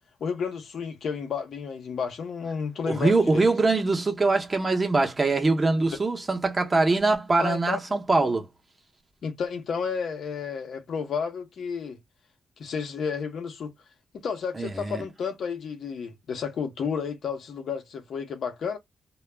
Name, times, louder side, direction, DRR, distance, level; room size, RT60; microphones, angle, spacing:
voice 1, 0.2-3.5 7.4-7.8 9.2-12.0 12.6-13.7 14.1-18.8, left 6 dB, 70° left, 0.7 m, -32 dB
voice 2, 2.9-8.5 14.6-15.0, right 3 dB, 25° right, 0.7 m, -23 dB
2.2 x 2.1 x 3.3 m
wide cardioid pair, 125°, 0 cm